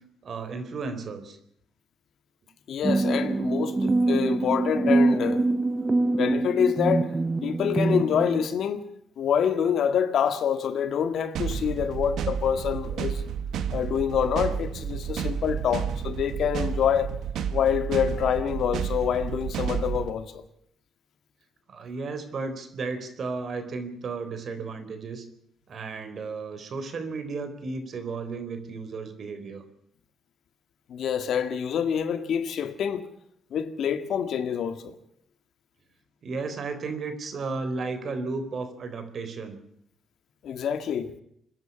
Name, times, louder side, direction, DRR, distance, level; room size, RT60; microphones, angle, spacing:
voice 1, 0.2-1.4 21.7-25.3 25.7-29.6 36.2-39.6, right 4 dB, 55° right, 3.9 m, -34 dB
voice 2, 2.7-5.5 6.2-7.1 7.4-8.8 9.2-13.2 13.7-17.1 17.5-20.4 30.9-33.1 33.5-35.0 40.4-41.1, left 8 dB, 70° left, 1.9 m, -26 dB
sound 1, 2.8-8.5, right 2 dB, 25° right, 0.7 m, -24 dB
sound 2, 11.3-20.1, right 7 dB, 75° right, 1.5 m, -31 dB
27.0 x 10.5 x 10.0 m
cardioid pair, 90°, 0 cm